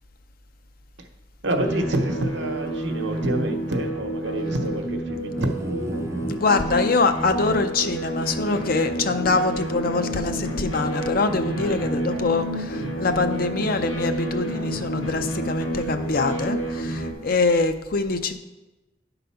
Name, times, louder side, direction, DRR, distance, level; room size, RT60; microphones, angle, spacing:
voice 1, 1.4-6.6 11.5-11.9, right 1 dB, 65° right, 4 dB, 1.0 m, -28 dB
sound 1, 1.6-17.1, right 1 dB, 85° left, 2.1 m, -29 dB
sound 2, 5.4-6.4 7.8-7.9 8.5-8.6, right 2 dB, 15° right, 0.3 m, -32 dB
voice 2, 6.3-18.4, left 3 dB, 50° left, 8 dB, 0.5 m, -24 dB
10.0 x 3.9 x 5.6 m, 1.1 s
head